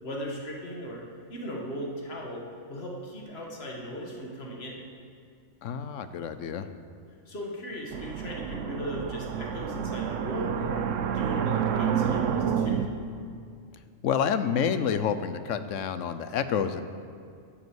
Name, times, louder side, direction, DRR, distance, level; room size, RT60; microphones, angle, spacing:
voice 1, 0.0-1.0 1.3-4.8 7.3-10.9 11.1-12.9, equal, 55° left, -1 dB, 2.1 m, -37 dB
voice 2, 5.6-6.7 14.0-16.8, left 7 dB, 80° left, 11 dB, 1.1 m, -28 dB
sound 1, 7.9-12.9, right 8 dB, 85° right, 1.1 m, -29 dB
12.0 x 8.0 x 8.0 m, 2.3 s
omnidirectional pair, 1.3 m